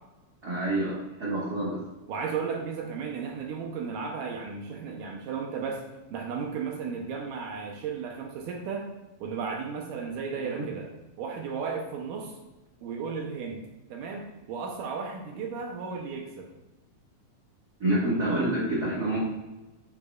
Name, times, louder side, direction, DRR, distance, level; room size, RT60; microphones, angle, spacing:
voice 1, 0.4-1.8 10.3-10.6 17.8-19.2, right 1 dB, 50° right, -6 dB, 1.1 m, -28 dB
voice 2, 2.1-5.8 6.1-8.9 9.2-10.9 11.2-12.4 12.8-16.5, right 5 dB, 75° right, 1 dB, 2.0 m, -34 dB
9.9 x 6.5 x 2.4 m, 1.1 s
omnidirectional pair, 4.4 m